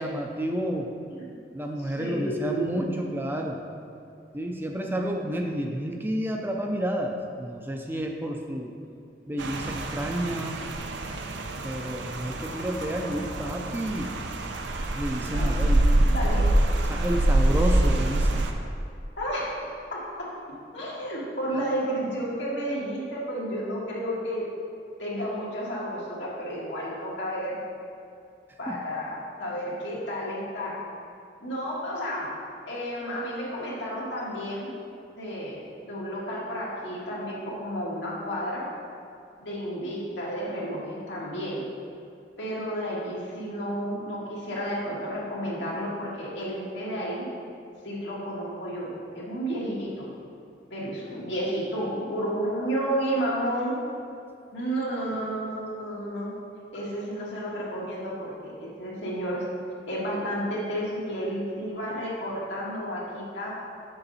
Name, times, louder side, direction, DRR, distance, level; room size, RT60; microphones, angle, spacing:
voice 1, 0.0-0.9 1.5-3.6 4.3-8.7 9.3-10.6 11.6-14.2 14.9-15.8 16.9-18.4 28.7-28.8, equal, 10° right, 2 dB, 0.4 m, -30 dB
voice 2, 1.8-2.9 15.3-16.5 19.2-19.4 19.9-20.3 20.7-24.4 25.0-27.6 28.6-29.1 29.4-30.7 31.4-32.3 32.7-34.7 35.1-38.6 39.4-41.7 42.4-47.3 47.8-50.1 50.7-53.8 54.5-56.3 56.7-59.4 59.9-63.5, equal, 90° left, -6 dB, 1.9 m, -31 dB
Rain, 9.4-18.5, right 1 dB, 85° right, 0.6 m, -25 dB
6.9 x 6.3 x 4.1 m, 2.5 s
head